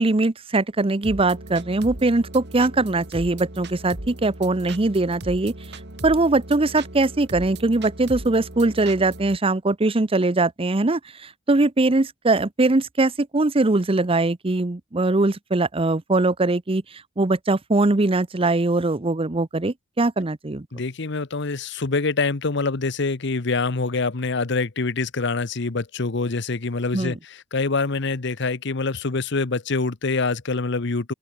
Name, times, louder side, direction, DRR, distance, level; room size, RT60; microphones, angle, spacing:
voice 1, 0.0-5.5 6.0-16.8 17.2-20.7 26.9-27.2, right 2 dB, 30° right, 0.8 m, -21 dB
sound 1, 1.0-9.4, right 1 dB, 60° right, 3.2 m, -37 dB
voice 2, 20.7-31.1, left 3 dB, 65° left, 1.0 m, -25 dB
open air
head